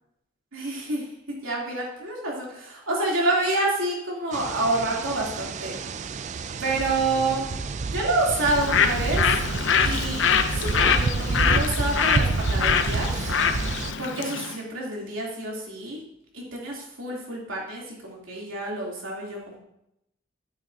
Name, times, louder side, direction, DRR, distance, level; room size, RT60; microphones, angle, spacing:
voice 1, 0.5-5.8 6.6-7.4 7.9-9.4 9.8-13.1 14.0-16.0 16.3-19.6, right 2 dB, 90° right, -3 dB, 3.2 m, -28 dB
sound 1, 4.3-13.9, right 3 dB, 35° right, 0.4 m, -29 dB
Bird, 8.4-14.6, left 6 dB, 65° left, 0.7 m, -24 dB
11.5 x 9.2 x 2.8 m, 0.81 s
head